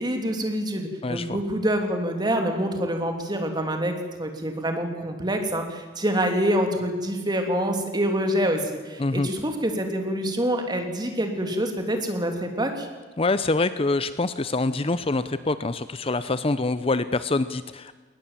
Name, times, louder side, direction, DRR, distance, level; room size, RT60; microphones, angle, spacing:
voice 1, 0.0-12.9, equal, 25° right, 4 dB, 3.0 m, -26 dB
voice 2, 1.0-1.4 9.0-9.3 13.2-18.0, left 3 dB, 30° left, 13 dB, 0.6 m, -25 dB
21.0 x 19.5 x 7.5 m, 1.4 s
head